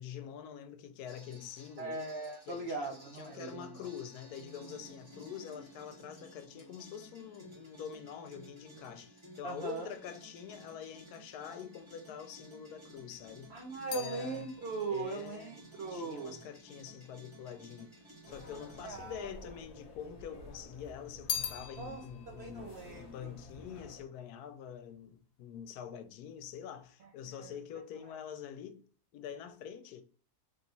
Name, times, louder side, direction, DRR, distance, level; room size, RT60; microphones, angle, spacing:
voice 1, 0.0-2.0 2.5-13.5 13.9-14.5 14.9-15.6 15.9-17.9 18.3-28.8 29.1-30.0, left 8 dB, 80° left, 1.1 m, -46 dB
sound 1, 1.1-18.9, right 1 dB, 20° right, 1.3 m, -55 dB
voice 2, 1.8-3.6 9.4-9.9 13.5-16.4 18.8-19.5 21.8-22.0 22.3-23.3 27.0-27.6, right 3 dB, 65° right, 0.6 m, -40 dB
sound 2, 12.9-17.4 18.1-18.9 19.2-20.4 20.7-24.2 24.5-25.0, left 8 dB, 60° left, 0.7 m, -44 dB
sound 3, 18.3-24.0, left 1 dB, 40° left, 1.0 m, -52 dB
3.3 x 2.9 x 3.9 m
omnidirectional pair, 1.6 m